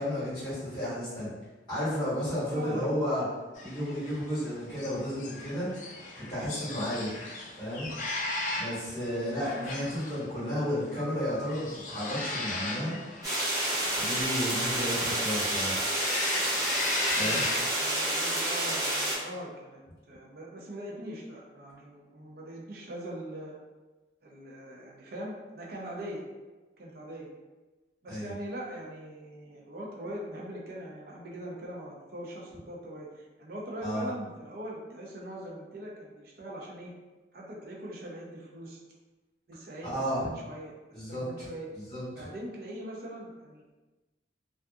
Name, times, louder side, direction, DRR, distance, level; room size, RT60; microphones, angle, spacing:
voice 1, 0.0-1.3 1.7-3.2 3.6-5.7 6.2-7.1 7.6-7.9 8.6-13.0 14.0-15.9 17.2-17.4 28.1-28.3 33.8-34.1 39.8-40.3 40.9-41.5 41.7-42.3, equal, 25° left, -11 dB, 1.4 m, -32 dB
voice 2, 2.5-2.9 17.1-19.8 20.1-23.6 24.2-26.2 26.8-27.3 28.0-36.9 37.3-38.8 39.5-39.9 40.2-41.7 42.1-43.8, right 1 dB, 55° right, -3 dB, 0.5 m, -41 dB
sound 1, 3.5-17.6, left 2 dB, 45° left, 0.3 m, -37 dB
sound 2, 13.2-19.1, right 1 dB, 20° right, 0.8 m, -29 dB
2.6 x 2.4 x 2.3 m, 1.2 s
head